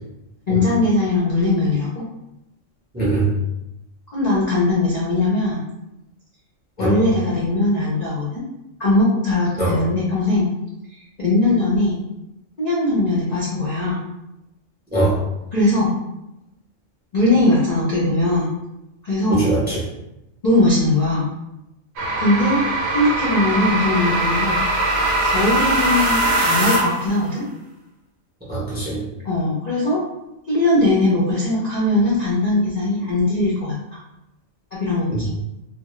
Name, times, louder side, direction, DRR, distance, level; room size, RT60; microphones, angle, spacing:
voice 1, 0.5-2.0 4.1-5.6 6.8-8.4 8.8-10.5 10.9-12.0 12.6-14.0 15.5-15.9 17.1-18.5 19.0-19.5 20.4-21.3 22.2-22.6 22.9-24.6 25.2-27.4 29.2-30.0 30.5-33.7 34.7-35.3, left 2 dB, 55° left, -7 dB, 0.5 m, -20 dB
voice 2, 2.9-3.3 6.8-7.0 9.6-9.8 14.9-15.2 19.3-19.8 28.5-29.0 35.1-35.2, right 3 dB, 10° right, -7 dB, 0.4 m, -21 dB
sound 1, 22.0-27.1, right 1 dB, 65° right, 0.8 m, -21 dB
2.2 x 2.1 x 2.9 m, 0.89 s
omnidirectional pair, 1.3 m